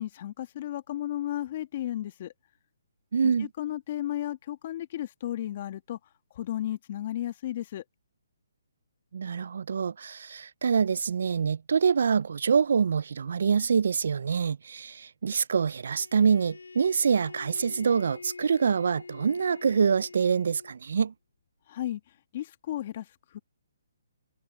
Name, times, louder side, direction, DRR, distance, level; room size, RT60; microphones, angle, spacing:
voice 1, 0.0-2.3 3.2-6.0 6.3-7.8 21.7-22.0 22.3-23.4, left 13 dB, 40° left, 1.8 m, -34 dB
voice 2, 3.1-3.5 9.1-21.1, right 6 dB, 65° right, 0.4 m, -25 dB
Bowed string instrument, 16.0-20.8, left 4 dB, 85° left, 3.4 m, -46 dB
hypercardioid pair, 145°, 0 cm